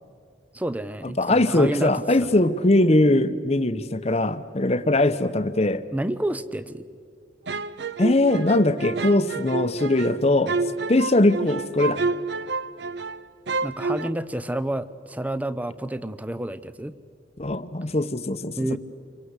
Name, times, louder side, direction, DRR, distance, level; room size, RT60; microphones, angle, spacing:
voice 1, 0.5-2.4 5.9-6.9 13.6-16.9 18.6-18.8, right 1 dB, 10° right, 15 dB, 0.6 m, -29 dB
voice 2, 1.2-5.8 8.0-10.5 10.9-12.0 17.4-18.8, left 2 dB, 35° left, 11 dB, 0.9 m, -21 dB
sound 1, 7.5-13.2 13.5-14.1, right 4 dB, 60° right, 0.7 m, -29 dB
28.0 x 23.5 x 8.2 m, 2.3 s
head